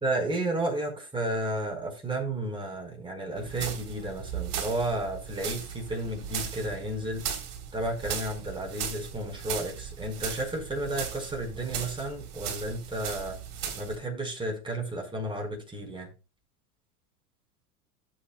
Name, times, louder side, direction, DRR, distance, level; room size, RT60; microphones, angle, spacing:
voice 1, 0.0-7.2 7.7-13.4 13.8-16.1, right 1 dB, 10° right, 4.9 m, -32 dB
sound 1, 3.4-14.0, right 8 dB, 55° right, 3.9 m, -37 dB
17.5 x 7.4 x 2.3 m
hypercardioid pair, 90°, 46 cm